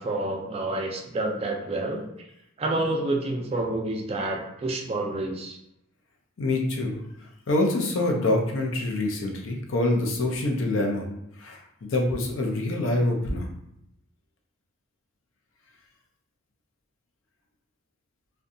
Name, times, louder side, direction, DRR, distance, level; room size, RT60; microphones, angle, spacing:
voice 1, 0.0-2.0 2.6-5.6, right 2 dB, 30° right, 1 dB, 0.3 m, -28 dB
voice 2, 6.4-7.0 7.5-11.1 11.4-13.5, left 2 dB, 70° left, 1 dB, 0.5 m, -25 dB
2.6 x 2.2 x 2.5 m, 0.81 s
head